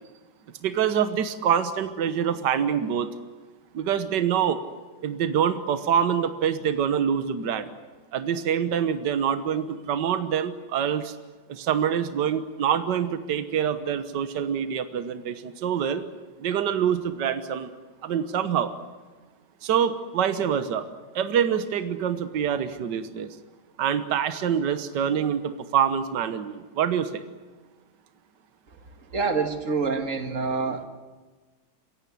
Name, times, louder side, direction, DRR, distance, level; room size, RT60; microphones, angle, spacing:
voice 1, 0.6-3.1 3.7-4.6 5.0-7.7 8.1-11.1 11.5-16.0 16.4-17.7 18.0-18.7 19.6-20.9 21.1-23.3 23.8-27.2, right 8 dB, 70° right, 10 dB, 1.8 m, -25 dB
voice 2, 29.1-30.9, right 4 dB, 45° right, 6 dB, 2.3 m, -26 dB
27.0 x 16.5 x 10.0 m, 1.3 s
omnidirectional pair, 2.0 m